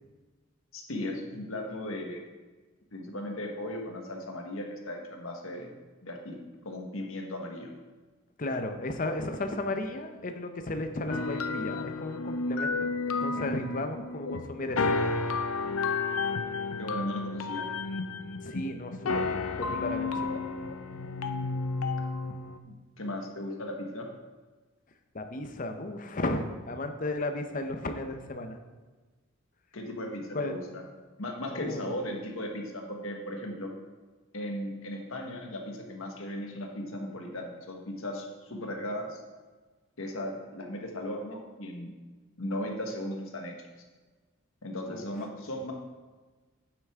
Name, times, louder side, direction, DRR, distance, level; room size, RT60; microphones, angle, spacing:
voice 1, 0.7-2.2 2.9-5.7 6.0-6.4 6.6-7.7 16.8-17.7 22.7-24.1 29.7-30.8 31.2-33.7 34.3-39.2 40.0-41.9 42.4-43.5 44.6-45.7, left 1 dB, 70° left, 2 dB, 1.4 m, -37 dB
voice 2, 8.4-14.9 18.4-20.4 25.1-28.6 30.3-30.6 31.5-32.0 44.9-45.1, left 2 dB, 40° left, 6 dB, 0.7 m, -34 dB
sound 1, 11.1-22.6, left 4 dB, 85° left, 0.6 m, -31 dB
9.1 x 7.8 x 3.6 m, 1.3 s
head